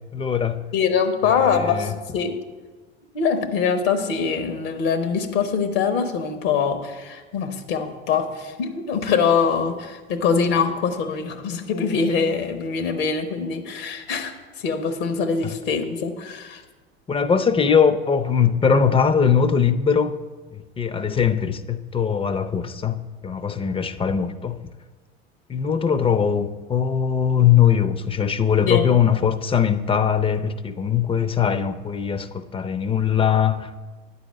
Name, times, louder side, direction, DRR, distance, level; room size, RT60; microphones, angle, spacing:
voice 1, 0.1-0.6 1.5-1.9 15.4-15.5 17.1-20.1 20.5-24.6 25.5-33.8, left 7 dB, 15° left, 0.5 m, -21 dB
voice 2, 0.7-2.3 3.1-16.6 28.7-28.9, left 6 dB, 65° left, 1.1 m, -23 dB
9.7 x 4.1 x 7.4 m
hypercardioid pair, 75°, 31 cm